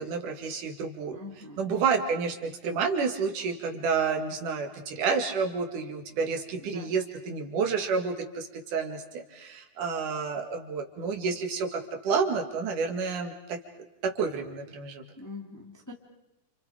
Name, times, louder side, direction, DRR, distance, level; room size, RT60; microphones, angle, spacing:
voice 1, 0.0-1.2 1.6-13.6 14.0-15.0, right 5 dB, 75° right, 3 dB, 3.6 m, -30 dB
voice 2, 1.1-1.7 6.6-6.9 15.2-15.9, left 2 dB, 5° left, 0 dB, 2.4 m, -43 dB
29.0 x 29.0 x 5.1 m, 0.94 s
omnidirectional pair, 3.7 m